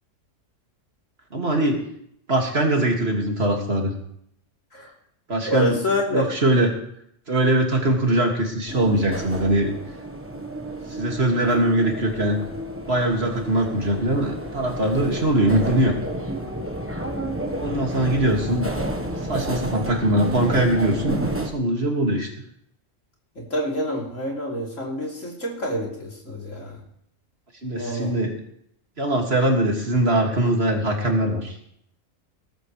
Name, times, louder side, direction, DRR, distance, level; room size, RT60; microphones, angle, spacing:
voice 1, 1.3-1.8 2.3-3.9 5.3-5.8 6.1-6.7 7.3-9.7 10.9-12.4 12.9-15.9 17.6-18.7 19.3-22.3 27.6-28.3 29.0-31.5, right 1 dB, 50° right, 1 dB, 2.5 m, -22 dB
voice 2, 5.5-6.3 18.2-18.3 23.4-26.8 27.7-28.1, equal, 70° left, -2 dB, 3.7 m, -27 dB
sound 1, 8.7-21.5, right 1 dB, 10° right, 1.1 m, -31 dB
18.0 x 14.0 x 3.2 m, 0.69 s
omnidirectional pair, 1.4 m